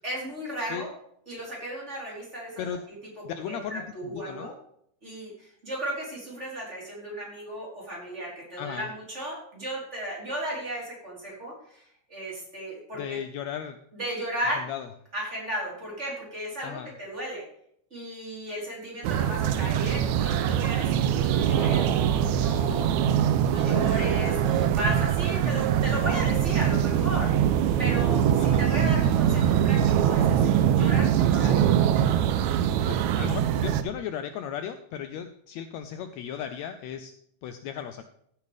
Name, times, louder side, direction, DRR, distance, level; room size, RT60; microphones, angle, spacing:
voice 1, 0.0-0.9 1.3-2.6 3.5-4.5 5.0-11.8 12.1-13.2 13.9-14.6 15.1-17.4 17.9-27.3 27.8-31.7, equal, 20° right, -5 dB, 4.4 m, -35 dB
voice 2, 3.2-4.5 8.6-8.9 12.9-13.8 14.6-14.9 16.6-16.9 21.6-21.9 28.4-28.7 32.9-37.1 37.4-38.0, left 9 dB, 75° left, 9 dB, 1.7 m, -36 dB
sound 1, 19.0-33.8, right 9 dB, 80° right, 2.0 m, -23 dB
15.0 x 8.2 x 3.5 m, 0.70 s
omnidirectional pair, 3.5 m